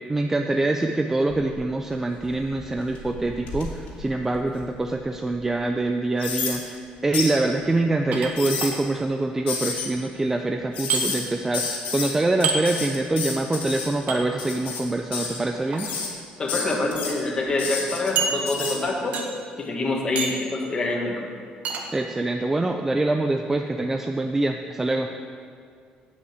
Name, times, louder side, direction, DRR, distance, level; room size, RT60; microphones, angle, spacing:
voice 1, 0.1-15.9 21.9-25.1, right 2 dB, 15° right, 4 dB, 0.5 m, -25 dB
sound 1, 1.3-1.8 2.2-4.9 5.4-5.5 6.2-6.6 7.1-7.3 8.2-8.7 9.5-9.9 10.7-11.2 11.5-12.1 12.4-13.9 14.4-14.8 15.1-15.4 15.8-16.1 16.5-17.1 17.6-18.1 18.5-18.8, left 5 dB, 80° left, 2.6 m, -30 dB
sound 2, 8.1-8.7 10.9-11.0 12.4-12.6 14.1-14.2 15.5-15.8 16.6-16.7 17.0-17.1 18.2-18.8 19.1-19.5 20.2-20.5 21.6-21.8, right 5 dB, 60° right, 1.4 m, -27 dB
voice 2, 16.4-19.2 19.6-21.3, left 2 dB, 30° left, 0 dB, 1.8 m, -26 dB
8.5 x 8.1 x 8.2 m, 2.2 s
cardioid pair, 140°, 3 cm